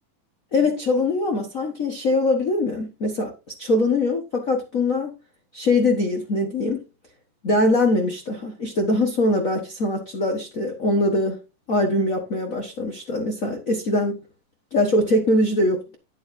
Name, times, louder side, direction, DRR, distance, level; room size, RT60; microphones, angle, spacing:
voice 1, 0.5-3.3 3.6-5.1 5.5-6.8 7.4-11.4 11.7-14.2 14.7-16.0, left 2 dB, 70° left, 0.7 m, -22 dB
9.7 x 9.5 x 2.7 m
omnidirectional pair, 3.7 m